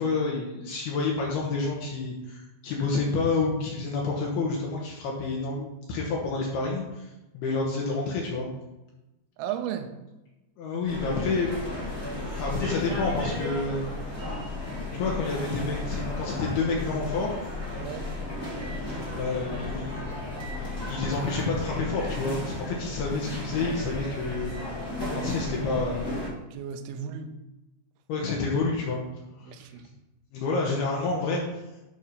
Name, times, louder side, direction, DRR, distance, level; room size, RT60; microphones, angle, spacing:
voice 1, 0.0-8.5 10.6-11.5 12.4-13.8 14.5-14.6 14.9-17.4 19.1-20.0 20.8-24.6 25.1-26.3 28.1-29.0 29.4-29.5 30.3-31.6, left 3 dB, 75° left, -2 dB, 2.7 m, -29 dB
voice 2, 9.4-10.0 17.8-18.1 25.2-25.3 26.4-27.4 29.4-29.9, right 8 dB, 80° right, 6 dB, 2.3 m, -35 dB
sound 1, 10.8-26.3, left 2 dB, 15° left, 0.8 m, -34 dB
9.5 x 3.6 x 5.6 m, 1.0 s
omnidirectional pair, 5.0 m